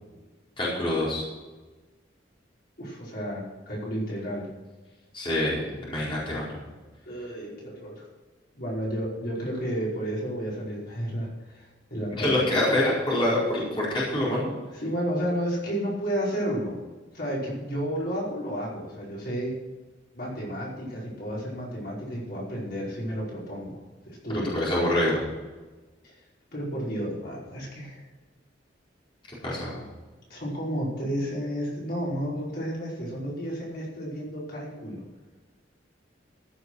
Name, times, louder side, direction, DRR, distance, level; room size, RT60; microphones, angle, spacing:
voice 1, 0.6-1.2 5.1-6.5 12.2-14.5 24.5-25.2 29.4-29.7, left 1 dB, 30° left, -7 dB, 4.6 m, -25 dB
voice 2, 2.8-4.5 7.0-8.1 8.5-12.3 14.7-16.8 17.1-19.5 20.1-23.8 24.1-24.5 26.0-26.1 26.5-28.0 29.4-29.6 30.3-35.0, equal, 55° left, -5 dB, 5.2 m, -32 dB
15.0 x 8.1 x 6.3 m, 1.2 s
head